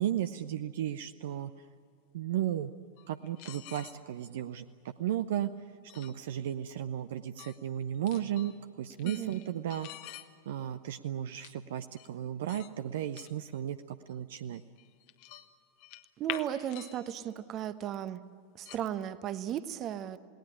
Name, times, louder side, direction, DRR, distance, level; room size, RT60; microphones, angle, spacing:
voice 1, 0.0-1.5 2.1-2.7 3.1-5.5 5.9-9.9 10.5-14.6, right 11 dB, 55° right, 11 dB, 0.7 m, -34 dB
sound 1, 3.0-4.0 5.9-6.2 7.4-7.6 7.9-8.6 8.9-10.3 11.4-11.5 12.0-12.1 12.5-12.7 13.1-13.6 14.1-14.2 14.5-15.5 15.8-17.4 17.8-17.9 18.6-18.8, left 14 dB, 45° left, 1.3 m, -46 dB
voice 2, 9.0-9.4 16.2-18.2 18.5-20.2, right 10 dB, 35° right, 14 dB, 1.0 m, -36 dB
28.5 x 19.0 x 10.0 m, 2.3 s
figure-of-eight pair, 90°, 0 cm